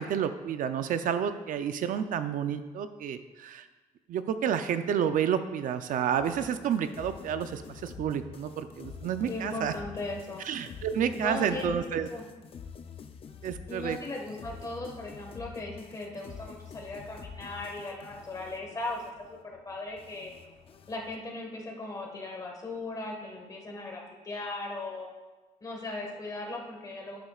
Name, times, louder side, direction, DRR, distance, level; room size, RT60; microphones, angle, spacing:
voice 1, 0.0-3.7 4.1-9.7 10.4-12.1 13.4-14.0, right 8 dB, 65° right, 10 dB, 0.6 m, -30 dB
sound 1, 6.2-21.2, left 6 dB, 40° left, 0.5 m, -47 dB
voice 2, 9.3-10.4 11.1-12.2 13.7-20.3 20.9-25.1 25.6-27.2, left 2 dB, 25° left, 0 dB, 1.6 m, -38 dB
11.5 x 9.5 x 2.4 m, 1.2 s
cardioid pair, 175°, 15 cm